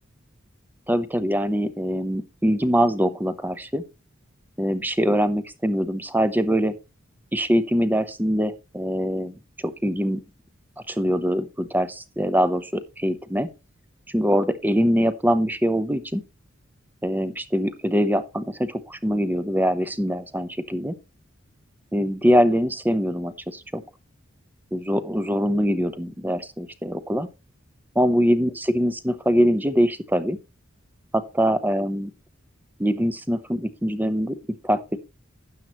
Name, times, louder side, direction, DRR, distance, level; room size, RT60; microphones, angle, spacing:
voice 1, 0.9-3.8 4.6-6.7 7.3-10.2 10.9-13.5 14.1-16.2 17.0-21.0 21.9-23.8 24.7-27.3 27.9-30.4 31.1-32.1 32.8-34.4 34.6-35.0, equal, 10° right, 0.7 m, -23 dB
12.5 x 8.9 x 3.0 m
head